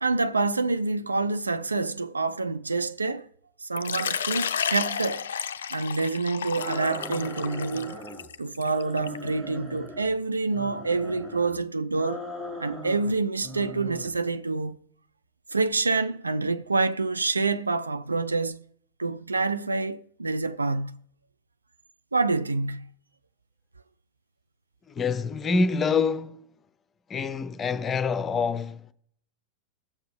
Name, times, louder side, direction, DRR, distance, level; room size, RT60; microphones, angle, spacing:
voice 1, 0.0-3.3 3.6-5.3 5.7-8.0 8.4-12.2 12.6-14.8 15.5-18.6 19.0-21.0 22.1-22.9, right 3 dB, 80° right, 0.4 m, -27 dB
Water / Liquid, 3.8-9.3, left 7 dB, 65° left, 0.4 m, -32 dB
sound 1, 6.5-8.3 8.6-10.1 10.5-11.5 11.9-13.1 13.4-14.1, equal, 40° right, 3.8 m, -39 dB
voice 2, 24.9-26.4 27.1-28.9, left 4 dB, 20° left, 0.6 m, -26 dB
17.5 x 6.8 x 3.3 m
figure-of-eight pair, 90°, 0 cm